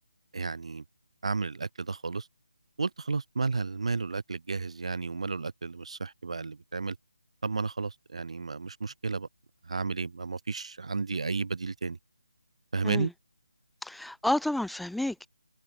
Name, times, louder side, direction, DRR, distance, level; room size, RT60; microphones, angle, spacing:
voice 1, 0.3-0.8 1.2-2.3 2.8-7.0 7.4-9.3 9.6-12.0 12.7-13.1, right 4 dB, 60° right, 1.8 m, -32 dB
voice 2, 13.8-15.3, left 1 dB, ahead, 0.9 m, -30 dB
figure-of-eight pair, 155°, 4 cm